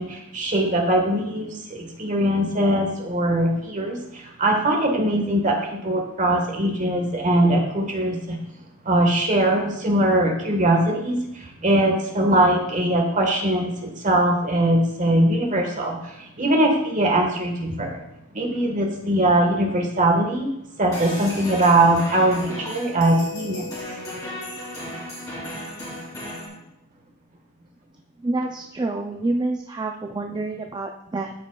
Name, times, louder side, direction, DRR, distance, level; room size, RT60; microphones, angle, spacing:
voice 1, 0.0-8.4 8.8-18.0 18.3-20.5 20.8-23.7, right 1 dB, 35° right, 2 dB, 1.4 m, -21 dB
sound 1, 20.9-26.5, left 1 dB, 15° left, 3.0 m, -35 dB
voice 2, 28.2-31.3, right 2 dB, 20° right, 3 dB, 0.4 m, -27 dB
13.0 x 5.1 x 2.3 m, 0.85 s
head